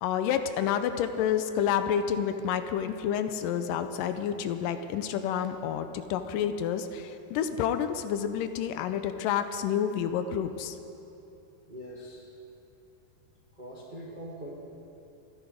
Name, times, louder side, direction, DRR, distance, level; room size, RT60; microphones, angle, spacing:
voice 1, 0.0-10.8, left 8 dB, 85° left, 9 dB, 2.3 m, -29 dB
voice 2, 11.7-12.2 13.6-14.5, right 1 dB, 40° right, -2 dB, 0.7 m, -42 dB
27.0 x 10.0 x 5.2 m, 2.9 s
omnidirectional pair, 4.0 m